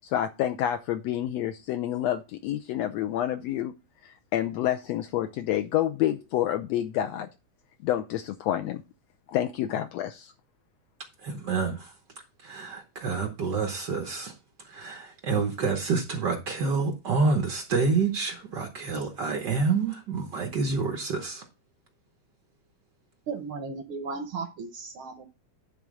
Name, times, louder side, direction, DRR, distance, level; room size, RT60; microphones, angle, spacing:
voice 1, 0.0-3.7 4.0-7.3 7.8-8.8 9.3-10.3, left 12 dB, 85° left, 1.5 m, -28 dB
voice 2, 11.2-11.9 12.4-14.3 14.6-21.4, right 4 dB, 90° right, 0.9 m, -28 dB
voice 3, 23.3-25.2, right 4 dB, 75° right, 1.2 m, -35 dB
10.5 x 3.6 x 6.2 m
omnidirectional pair, 3.7 m